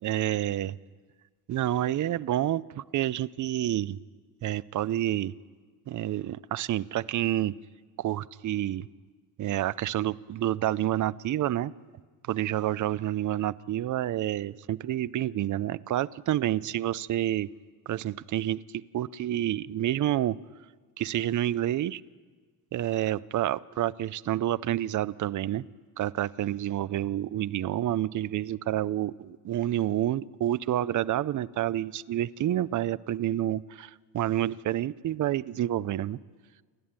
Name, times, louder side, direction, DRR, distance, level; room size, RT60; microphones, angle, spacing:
voice 1, 0.0-0.8 1.5-4.0 4.4-5.3 5.9-7.5 8.0-8.9 9.4-11.7 12.3-17.5 17.9-20.4 21.0-22.0 22.7-25.6 26.0-36.2, right 13 dB, 50° right, 19 dB, 0.5 m, -29 dB
28.5 x 11.5 x 8.8 m, 1.5 s
cardioid pair, 125°, 40 cm